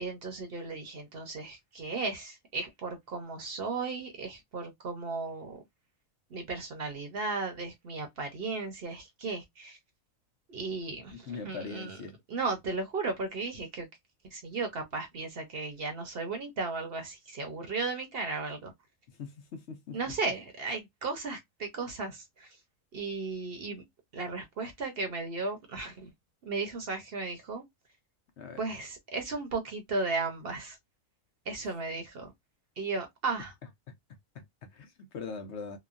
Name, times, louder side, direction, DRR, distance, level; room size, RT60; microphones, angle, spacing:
voice 1, 0.0-5.6 6.3-9.8 10.5-12.0 12.3-13.9 14.2-18.7 19.9-22.6 22.9-23.8 24.1-26.1 26.4-27.6 28.6-30.8 31.5-32.3 32.8-33.5, right 3 dB, 55° right, 0.8 m, -35 dB
voice 2, 11.1-12.2 19.1-20.1 28.4-28.6 31.6-31.7 33.9-34.0 34.3-35.8, left 5 dB, 65° left, 0.9 m, -42 dB
2.9 x 2.1 x 2.4 m
omnidirectional pair, 1.4 m